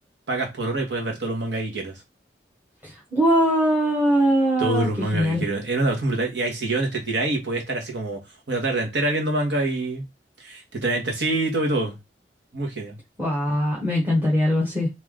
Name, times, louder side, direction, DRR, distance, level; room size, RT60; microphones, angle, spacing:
voice 1, 0.3-2.0 4.6-8.2 8.5-10.0 10.4-12.0 12.5-13.0, right 2 dB, 85° right, 1.4 m, -25 dB
voice 2, 2.8-5.4 13.2-15.0, equal, 10° right, 1.0 m, -21 dB
3.3 x 3.0 x 3.7 m
head